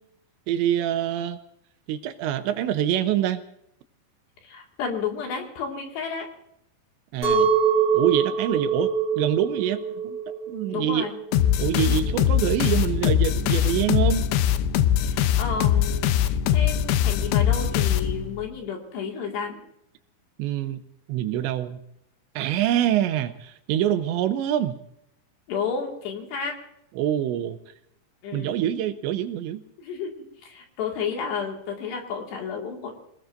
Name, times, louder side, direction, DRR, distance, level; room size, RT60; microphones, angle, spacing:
voice 1, 0.5-1.4 1.9-3.4 7.1-7.5 7.9-10.2 10.5-11.1 11.6-14.2 20.4-20.8 21.1-21.8 22.4-24.8 27.0-27.6 28.3-29.6, right 11 dB, 80° right, 10 dB, 2.9 m, -25 dB
voice 2, 4.4-6.3 10.7-11.1 15.0-19.6 25.5-26.5 28.2-28.6 29.8-33.0, left 6 dB, 65° left, 1 dB, 4.0 m, -32 dB
Chink clink, 7.2-12.4, right 6 dB, 10° left, 6.1 m, -25 dB
sound 1, 11.3-18.5, left 10 dB, 80° left, 2.6 m, -22 dB
25.5 x 19.5 x 2.6 m, 0.77 s
omnidirectional pair, 5.6 m